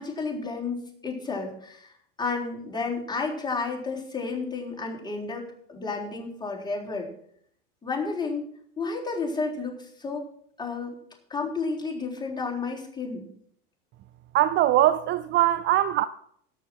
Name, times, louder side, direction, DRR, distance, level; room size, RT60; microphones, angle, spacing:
voice 1, 0.0-7.1 7.8-8.4 8.8-10.3 10.6-11.0 11.3-13.2, left 4 dB, 15° left, 3.7 m, -31 dB
voice 2, 14.3-16.0, right 13 dB, 35° right, 0.5 m, -21 dB
18.0 x 6.5 x 4.5 m
supercardioid pair, 110°, 30 cm